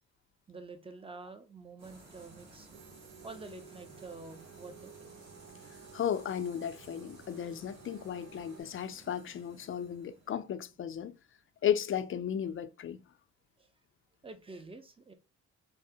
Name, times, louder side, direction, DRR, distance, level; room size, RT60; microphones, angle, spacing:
voice 1, 0.5-2.7 3.2-5.3 13.6-13.7 14.2-15.1, right 3 dB, 20° right, 0.6 m, -48 dB
sound 1, 1.8-11.4, right 3 dB, 80° right, 1.5 m, -56 dB
sound 2, 2.7-8.6, right 7 dB, 60° right, 0.6 m, -55 dB
voice 2, 5.9-11.2 11.6-13.0, left 9 dB, 45° left, 0.4 m, -34 dB
3.4 x 2.1 x 2.6 m
cardioid pair, 85°, 31 cm